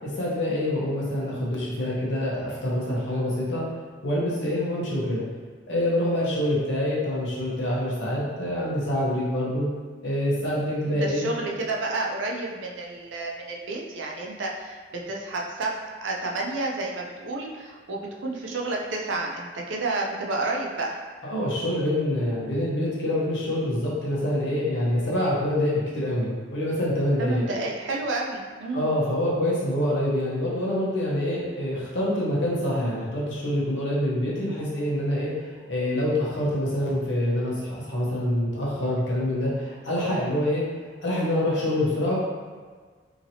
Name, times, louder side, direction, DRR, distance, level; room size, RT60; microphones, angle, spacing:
voice 1, 0.0-3.7 4.0-5.2 5.7-9.7 10.0-11.3 21.2-27.4 28.7-40.6 41.0-42.2, left 1 dB, 80° left, -6 dB, 0.9 m, -26 dB
voice 2, 10.9-21.0 27.2-28.9, right 2 dB, 90° right, -1 dB, 0.5 m, -30 dB
2.8 x 2.7 x 2.7 m, 1.5 s
head